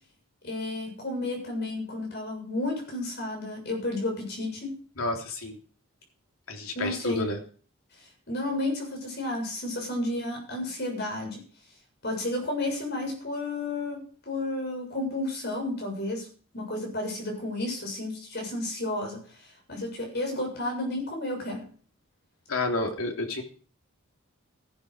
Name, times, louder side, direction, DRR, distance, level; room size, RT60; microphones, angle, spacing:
voice 1, 0.4-4.7 6.8-7.3 8.3-11.4 12.0-16.3 16.5-19.2 19.7-21.7, left 2 dB, 50° left, 1 dB, 7.4 m, -32 dB
voice 2, 5.0-5.6 6.5-7.4 22.5-23.4, left 2 dB, 80° left, 2 dB, 3.4 m, -30 dB
16.5 x 11.0 x 5.1 m, 0.42 s
head